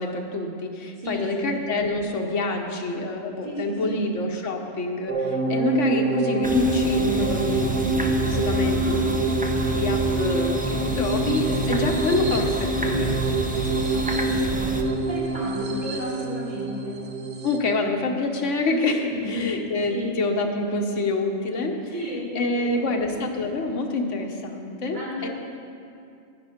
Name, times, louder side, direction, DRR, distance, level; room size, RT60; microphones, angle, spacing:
voice 1, 0.0-9.3 9.7-13.5 17.4-25.3, left 2 dB, 80° left, 3 dB, 1.4 m, -27 dB
voice 2, 1.0-1.6 3.4-4.0 8.6-9.0 13.9-17.0 19.1-19.5 19.9-20.2 21.9-23.1 24.9-25.3, left 1 dB, 40° right, -7 dB, 2.9 m, -34 dB
sound 1, 5.1-17.6, right 3 dB, 75° right, 1.3 m, -25 dB
sound 2, 6.4-14.8, equal, 10° right, 0.6 m, -30 dB
11.0 x 10.5 x 5.1 m, 2.4 s
omnidirectional pair, 1.2 m